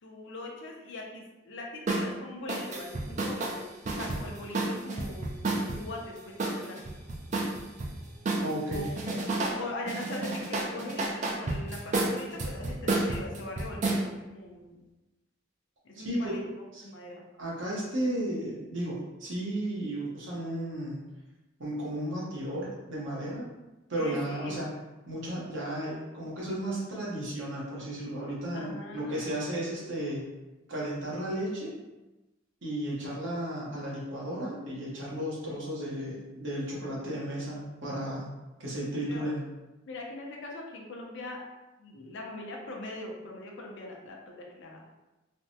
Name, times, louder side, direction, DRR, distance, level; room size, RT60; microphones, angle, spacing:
voice 1, 0.0-6.3 6.6-6.8 8.7-14.8 15.8-17.3 24.0-24.8 28.5-29.4 39.1-39.2 39.9-41.4 41.8-44.8, left 2 dB, 65° left, 0 dB, 0.6 m, -41 dB
sound 1, 1.9-2.1 2.5-5.8 6.4-7.9 8.2-9.6 9.9-14.0, right 2 dB, 35° right, 0.4 m, -30 dB
voice 2, 8.4-8.8 15.9-16.4 16.7-16.8 17.4-21.0 21.6-23.5 23.9-24.7 25.1-30.3 30.7-31.7 32.6-38.3 38.6-39.4, right 1 dB, 65° right, -5 dB, 1.0 m, -34 dB
3.3 x 2.1 x 2.7 m, 1.0 s
head